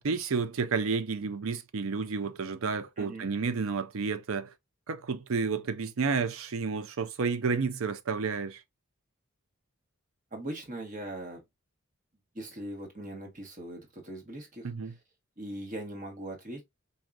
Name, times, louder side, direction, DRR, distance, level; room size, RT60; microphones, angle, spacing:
voice 1, 0.0-4.5 4.9-8.6 14.6-14.9, right 5 dB, 70° right, 0.5 m, -31 dB
voice 2, 3.0-3.3 10.3-11.4 12.3-15.0 15.4-16.6, right 1 dB, 35° right, 1.3 m, -40 dB
4.6 x 2.7 x 2.4 m
head